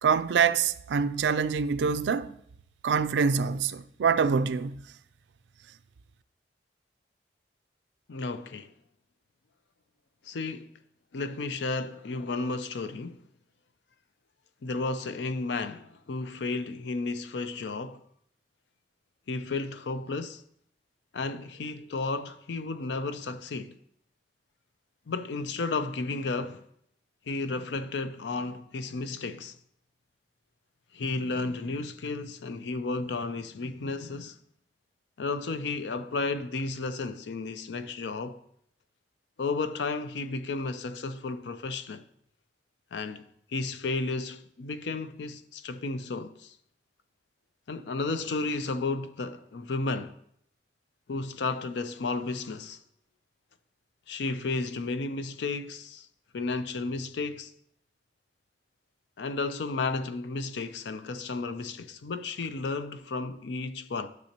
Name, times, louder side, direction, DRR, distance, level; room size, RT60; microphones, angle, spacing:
voice 1, 0.0-2.3 2.8-4.8, right 6 dB, 85° right, 0.4 m, -25 dB
voice 2, 8.1-8.7 10.2-10.7 11.1-13.2 14.6-18.0 19.3-20.4 21.1-23.8 25.1-26.6 27.3-29.6 30.9-34.4 35.2-38.4 39.4-42.0 42.9-46.6 47.7-50.2 51.1-52.8 54.1-56.1 56.3-57.5 59.2-64.1, left 3 dB, 85° left, 0.5 m, -33 dB
12.0 x 6.2 x 2.9 m
head